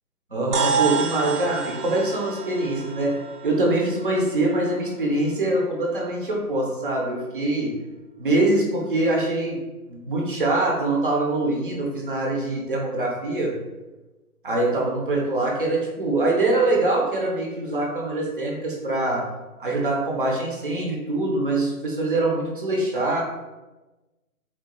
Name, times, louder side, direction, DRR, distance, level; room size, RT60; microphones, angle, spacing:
voice 1, 0.3-7.8 8.2-9.6 9.9-13.6 14.4-19.3 19.6-23.2, right 2 dB, 40° right, -1 dB, 0.4 m, -24 dB
sound 1, 0.5-5.1, right 6 dB, 90° right, 0.5 m, -29 dB
3.8 x 2.2 x 2.2 m, 1.1 s
figure-of-eight pair, 145°, 45 cm